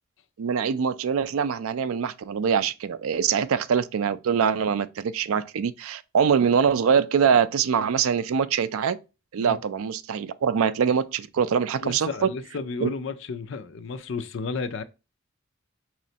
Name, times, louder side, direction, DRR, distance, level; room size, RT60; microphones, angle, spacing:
voice 1, 0.4-9.0 9.3-12.1 12.8-12.9, right 7 dB, 75° right, 0.4 m, -23 dB
voice 2, 11.8-14.8, left 4 dB, 55° left, 0.4 m, -32 dB
4.1 x 3.1 x 2.7 m
head